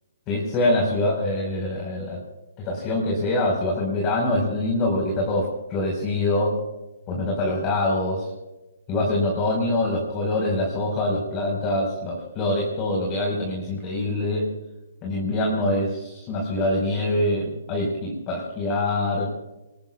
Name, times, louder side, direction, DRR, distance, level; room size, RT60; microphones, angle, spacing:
voice 1, 0.3-2.2 2.6-6.6 7.1-8.3 8.9-14.5 15.0-19.3, left 1 dB, 25° left, -2 dB, 4.7 m, -24 dB
26.0 x 20.0 x 2.4 m, 1.0 s
figure-of-eight pair, 130°, 0 cm